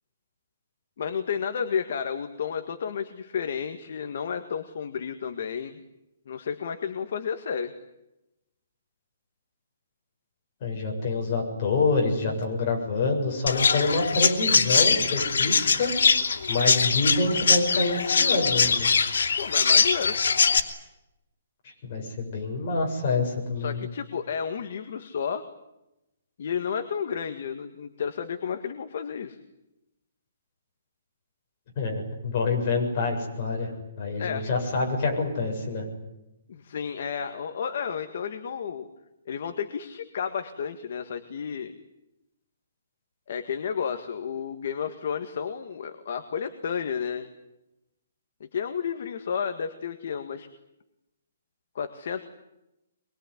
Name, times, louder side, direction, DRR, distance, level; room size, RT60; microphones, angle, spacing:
voice 1, 1.0-5.8 6.3-7.7 19.4-20.2 23.6-25.4 26.4-29.4 34.2-34.4 36.5-38.9 39.2-41.7 43.3-47.3 48.5-50.5 51.7-52.3, left 7 dB, 45° left, 8 dB, 1.7 m, -31 dB
voice 2, 10.6-15.9 16.5-18.9 21.6-23.9 31.8-33.7 34.0-35.8, left 3 dB, 30° left, 0 dB, 7.4 m, -27 dB
Chirp tweet, 13.5-20.6, left 5 dB, 85° left, 3.0 m, -22 dB
24.5 x 22.5 x 9.9 m, 0.91 s
hypercardioid pair, 175°, 0 cm